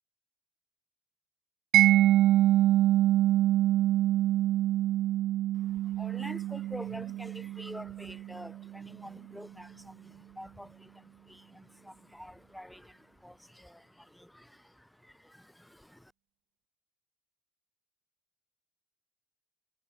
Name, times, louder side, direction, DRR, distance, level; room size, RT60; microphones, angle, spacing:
Mallet percussion, 1.7-8.5, right 14 dB, 55° right, 3.0 m, -25 dB
voice 1, 5.5-16.1, equal, 5° left, 7.1 m, -47 dB
figure-of-eight pair, 60°, 0 cm